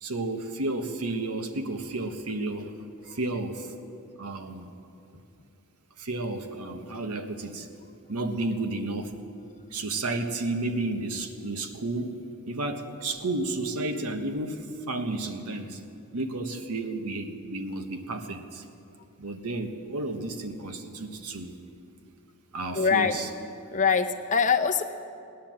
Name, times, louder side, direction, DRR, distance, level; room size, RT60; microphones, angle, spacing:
voice 1, 0.0-2.8 3.1-3.7 4.2-4.7 6.0-7.7 8.1-9.1 9.7-12.2 12.5-15.8 16.1-18.6 19.2-21.5 22.5-23.3, right 2 dB, 90° right, 6 dB, 1.2 m, -32 dB
voice 2, 22.7-23.2 23.7-24.8, left 6 dB, 35° left, 7 dB, 0.7 m, -23 dB
18.0 x 10.0 x 7.5 m, 2.6 s
head